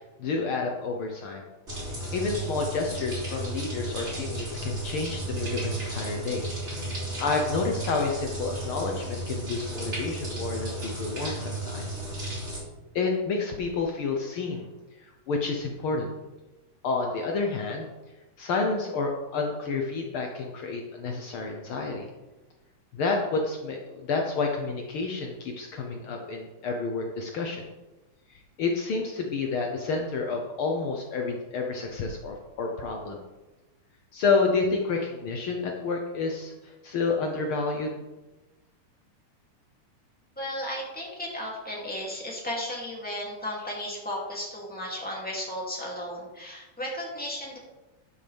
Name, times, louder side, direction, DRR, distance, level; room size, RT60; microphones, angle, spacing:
voice 1, 0.2-1.4 2.1-6.4 7.2-11.8 12.9-14.7 15.0-16.1 16.8-17.9 18.4-22.1 22.9-27.6 28.3-33.2 34.1-37.9, left 4 dB, 85° left, 1 dB, 1.1 m, -29 dB
sound 1, 1.7-12.6, right 1 dB, 20° right, 3.3 m, -34 dB
voice 2, 40.4-47.6, equal, 5° left, -4 dB, 2.2 m, -34 dB
12.5 x 7.7 x 3.5 m, 1.1 s
omnidirectional pair, 3.7 m